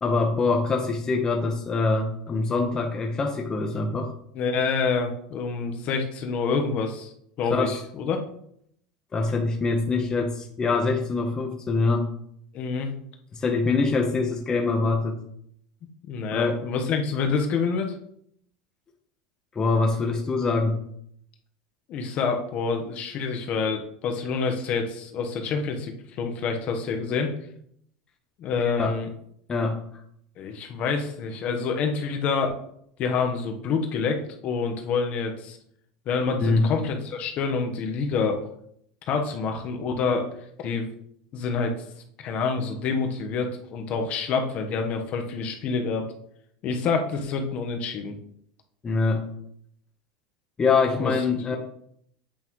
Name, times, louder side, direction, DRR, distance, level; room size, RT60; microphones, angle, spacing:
voice 1, 0.0-4.1 7.5-7.8 9.1-12.1 13.3-15.2 16.3-16.6 19.5-20.8 28.6-29.0 29.5-29.8 36.4-36.7 48.8-49.2 50.6-51.6, left 3 dB, 20° left, 2 dB, 0.9 m, -24 dB
voice 2, 4.3-8.2 12.5-12.9 16.1-17.9 21.9-27.3 28.4-29.1 30.4-32.6 33.0-35.6 36.1-38.4 39.1-40.3 40.6-40.9 41.3-41.7 42.2-46.1 46.6-48.1 50.9-51.1, left 5 dB, 45° left, 4 dB, 1.1 m, -27 dB
8.4 x 5.5 x 3.1 m, 0.69 s
supercardioid pair, 125°, 3 cm